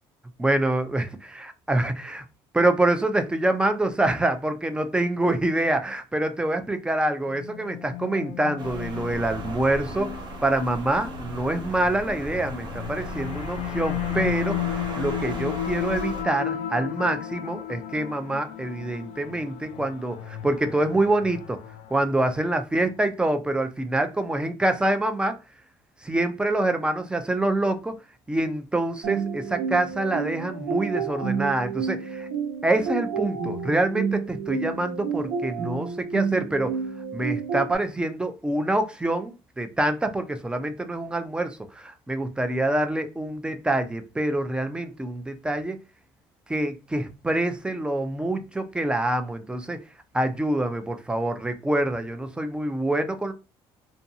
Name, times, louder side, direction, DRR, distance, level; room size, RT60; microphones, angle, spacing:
voice 1, 0.4-2.2 2.5-21.6 21.9-25.4 26.0-28.0 28.3-32.3 32.6-36.8 37.1-45.8 46.5-49.8 50.1-53.3, right 1 dB, 10° right, 0.4 m, -26 dB
sound 1, 7.3-22.6, left 12 dB, 70° left, 0.4 m, -34 dB
sound 2, 8.6-16.2, right 2 dB, 40° right, 0.6 m, -37 dB
sound 3, 29.0-37.8, right 6 dB, 75° right, 1.0 m, -30 dB
2.6 x 2.3 x 2.7 m
cardioid pair, 125°, 11 cm